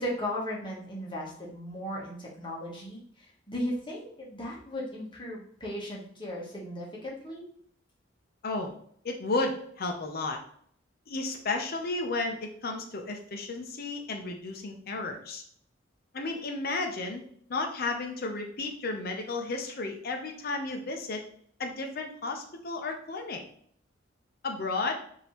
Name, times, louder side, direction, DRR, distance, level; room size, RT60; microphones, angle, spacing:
voice 1, 0.0-7.4, equal, 25° left, -4 dB, 1.2 m, -36 dB
voice 2, 9.0-10.4 11.1-15.4 16.1-17.2 17.5-21.2 21.6-23.4 24.4-24.9, left 3 dB, 55° left, 3 dB, 0.6 m, -33 dB
5.1 x 2.8 x 3.0 m, 0.63 s
head